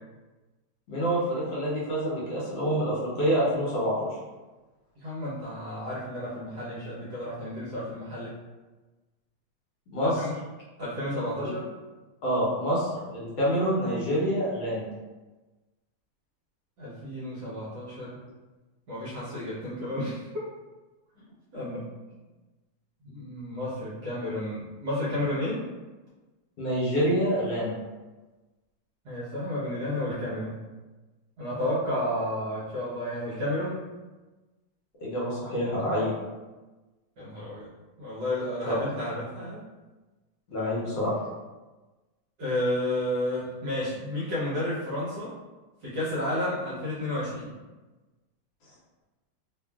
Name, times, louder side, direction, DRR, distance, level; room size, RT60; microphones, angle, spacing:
voice 1, 0.9-4.1 9.9-10.2 12.2-14.9 26.6-27.7 35.0-36.1 38.7-38.9 40.5-41.1, equal, 70° left, -7 dB, 1.3 m, -27 dB
voice 2, 5.0-8.4 10.0-10.3 10.8-11.7 16.8-18.2 18.9-20.3 21.5-21.8 23.0-25.6 29.0-30.6 31.4-33.8 37.2-37.7 38.0-39.6 40.6-40.7 42.4-45.3 45.8-47.5, left 1 dB, 65° right, -8 dB, 1.1 m, -31 dB
3.3 x 2.3 x 2.2 m, 1.2 s
omnidirectional pair, 2.4 m